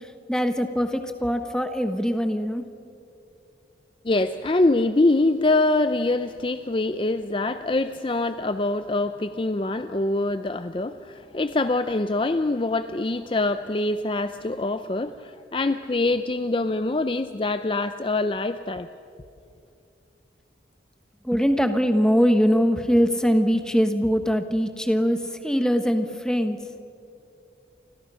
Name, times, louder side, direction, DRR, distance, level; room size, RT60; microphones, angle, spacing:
voice 1, 0.3-2.6 21.2-26.6, equal, 5° left, 7 dB, 1.3 m, -22 dB
voice 2, 4.0-18.9, left 2 dB, 30° left, 10 dB, 0.5 m, -24 dB
29.5 x 26.0 x 5.7 m, 2.6 s
head